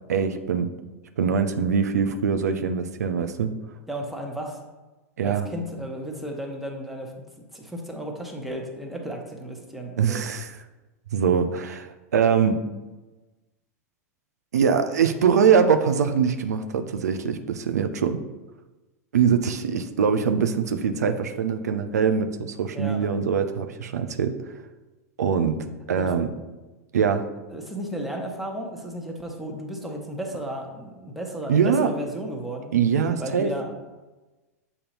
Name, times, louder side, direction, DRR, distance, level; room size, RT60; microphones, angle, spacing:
voice 1, 0.1-0.7 1.2-3.5 5.2-5.5 10.0-10.6 11.1-12.6 14.5-18.2 19.1-24.3 25.2-25.6 25.9-26.3 26.9-27.3 31.5-31.9 32.7-33.5, right 6 dB, 85° right, 8 dB, 0.5 m, -23 dB
voice 2, 3.9-4.6 5.2-10.3 22.7-23.1 25.9-26.1 27.5-32.7 33.2-33.7, right 1 dB, ahead, 0 dB, 1.1 m, -34 dB
7.1 x 2.8 x 5.2 m, 1.1 s
hypercardioid pair, 105°, 9 cm